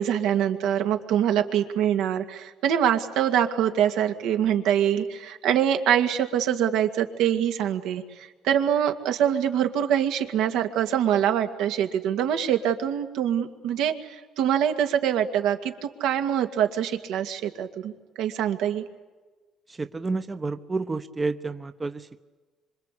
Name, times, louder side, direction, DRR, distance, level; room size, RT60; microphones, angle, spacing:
voice 1, 0.0-14.1 14.4-17.9 18.2-18.8, right 9 dB, 80° right, 6 dB, 2.2 m, -24 dB
voice 2, 19.8-22.2, right 3 dB, 20° right, 10 dB, 0.8 m, -30 dB
26.0 x 25.0 x 8.4 m, 1.3 s
cardioid pair, 140°, 0 cm